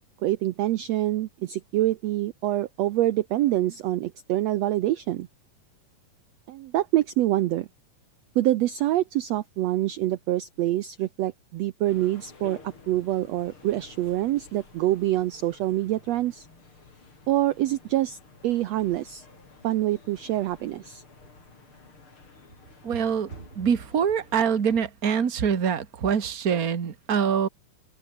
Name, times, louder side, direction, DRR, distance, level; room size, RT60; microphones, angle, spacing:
voice 1, 0.2-5.3 6.5-7.7 8.3-16.5 17.3-18.2 18.4-19.2 19.6-21.0, right 14 dB, 85° right, 1.4 m, -26 dB
sound 1, 11.9-24.6, left 3 dB, 35° left, 5.6 m, -51 dB
voice 2, 22.8-27.5, right 7 dB, 40° right, 1.4 m, -25 dB
open air
omnidirectional pair, 4.0 m